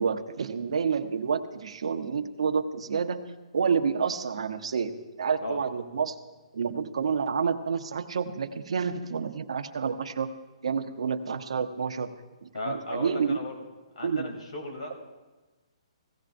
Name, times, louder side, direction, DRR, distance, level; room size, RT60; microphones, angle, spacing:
voice 1, 0.0-3.2 3.5-6.2 6.5-10.3 10.6-12.1 12.4-13.4 14.0-14.4, right 6 dB, 65° right, 8 dB, 0.8 m, -29 dB
voice 2, 12.5-13.5 14.0-15.0, left 2 dB, 75° left, 3 dB, 2.8 m, -36 dB
16.5 x 16.0 x 2.6 m, 1.2 s
hypercardioid pair, 175°, 3 cm